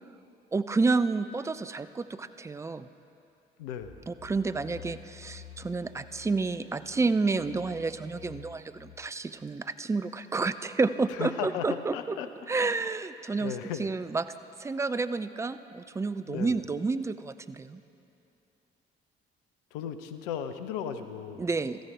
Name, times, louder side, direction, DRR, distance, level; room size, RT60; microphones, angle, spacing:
voice 1, 0.5-2.9 4.1-12.2 12.5-14.2 14.6-17.8 21.4-21.8, right 3 dB, 10° right, 12 dB, 0.3 m, -30 dB
voice 2, 3.6-4.1 11.1-12.3 13.4-13.9 16.3-16.5 19.7-21.5, left 8 dB, 70° left, 9 dB, 0.6 m, -36 dB
sound 1, 3.8-9.5, left 7 dB, 85° left, 1.2 m, -50 dB
13.5 x 9.2 x 4.8 m, 2.8 s
figure-of-eight pair, 45°, 29 cm